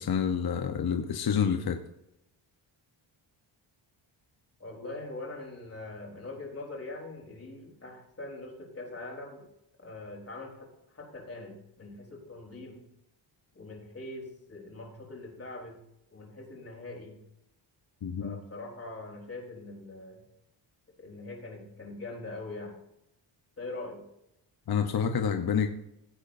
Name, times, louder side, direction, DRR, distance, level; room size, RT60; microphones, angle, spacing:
voice 1, 0.0-1.8 18.0-18.4 24.7-25.7, left 7 dB, 50° left, 6 dB, 1.0 m, -28 dB
voice 2, 4.6-9.4 9.8-12.8 13.5-15.8 16.1-17.2 18.2-20.2 21.0-22.8 23.6-24.0, left 2 dB, 30° left, -1 dB, 4.0 m, -42 dB
16.5 x 8.2 x 2.7 m, 0.82 s
cardioid pair, 95°, 49 cm